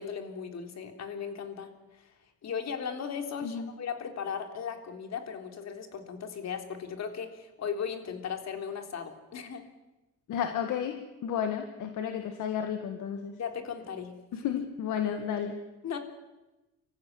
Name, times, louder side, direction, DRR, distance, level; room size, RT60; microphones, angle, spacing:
voice 1, 0.0-2.1 2.4-9.7 13.4-14.7 15.8-16.0, left 7 dB, 60° left, 5 dB, 3.6 m, -37 dB
voice 2, 10.3-13.3 14.3-15.6, left 8 dB, 80° left, 6 dB, 1.9 m, -32 dB
25.5 x 15.0 x 9.6 m, 1.0 s
cardioid pair, 90°, 30 cm